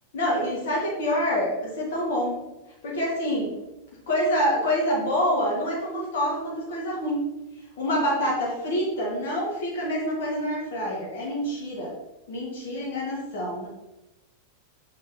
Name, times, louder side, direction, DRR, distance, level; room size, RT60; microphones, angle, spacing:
voice 1, 0.1-2.4 2.8-3.5 4.1-7.3 7.8-11.9 12.3-13.7, equal, 55° left, -3 dB, 2.2 m, -26 dB
6.6 x 5.1 x 4.0 m, 0.96 s
figure-of-eight pair, 90°, 0 cm